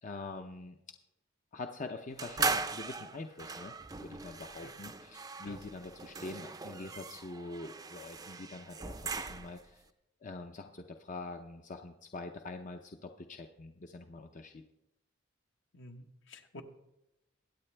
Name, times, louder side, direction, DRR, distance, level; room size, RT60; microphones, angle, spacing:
voice 1, 0.0-0.8 1.5-9.8 10.2-14.6, left 3 dB, 40° left, 5 dB, 0.6 m, -45 dB
sound 1, 2.2-9.7, right 4 dB, 20° right, 0.5 m, -39 dB
voice 2, 15.7-16.6, left 1 dB, 65° left, 5 dB, 1.1 m, -50 dB
22.5 x 8.6 x 3.3 m, 0.90 s
head